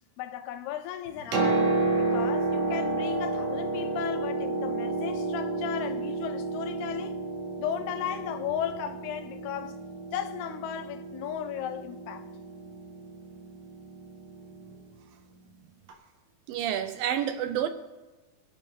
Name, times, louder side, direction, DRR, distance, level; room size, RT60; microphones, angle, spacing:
voice 1, 0.2-1.7 2.0-7.2 7.6-9.8 10.1-12.3, left 10 dB, 90° left, 2.8 m, -35 dB
Piano, 1.1-14.8 15.9-16.0, right 3 dB, 60° right, 3.1 m, -31 dB
voice 2, 16.5-17.7, right 10 dB, 80° right, 2.1 m, -29 dB
25.5 x 8.8 x 3.6 m
omnidirectional pair, 4.5 m